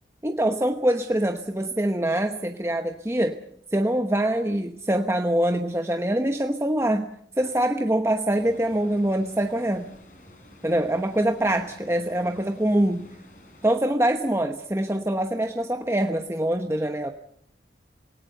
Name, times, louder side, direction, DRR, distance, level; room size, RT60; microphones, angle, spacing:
voice 1, 0.2-3.4 3.7-7.1 7.4-9.9 10.6-13.1 13.6-17.1, right 1 dB, 15° right, 5 dB, 1.0 m, -24 dB
sound 1, 8.4-13.8, left 1 dB, 45° left, 6.1 m, -51 dB
26.5 x 18.0 x 6.7 m, 0.69 s
head